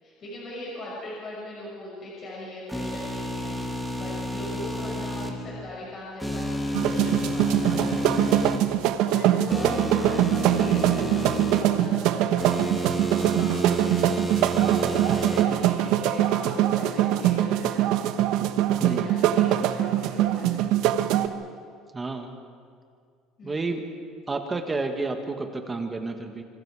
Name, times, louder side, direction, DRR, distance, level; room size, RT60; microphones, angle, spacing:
voice 1, 0.0-14.1 14.5-17.9 18.7-20.6 23.4-23.7, left 1 dB, 30° left, -5 dB, 6.1 m, -39 dB
sound 1, 2.7-5.3 6.2-8.6 9.5-11.6 12.4-15.4, right 1 dB, ahead, 1.9 m, -30 dB
sound 2, 6.7-21.3, right 12 dB, 65° right, 1.2 m, -23 dB
voice 2, 18.8-19.1 21.9-22.3 23.4-23.8 24.3-26.4, right 3 dB, 15° right, 5 dB, 1.5 m, -30 dB
27.0 x 26.5 x 4.8 m, 2.2 s
cardioid pair, 165°, 0 cm